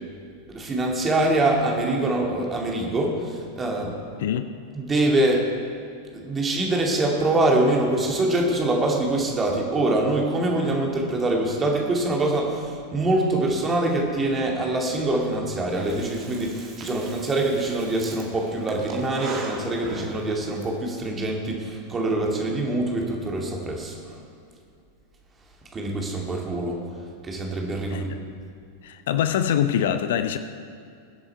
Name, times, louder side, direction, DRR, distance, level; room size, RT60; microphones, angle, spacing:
voice 1, 0.5-4.0 4.7-5.4 6.1-24.2 25.7-26.8 27.2-28.1, right 2 dB, 20° right, 0 dB, 2.4 m, -24 dB
Breathing, 15.7-20.7, right 3 dB, 35° right, 2.1 m, -39 dB
voice 2, 28.8-30.4, left 9 dB, 55° left, 10 dB, 0.6 m, -24 dB
22.0 x 8.0 x 4.5 m, 2.4 s
figure-of-eight pair, 90°, 0 cm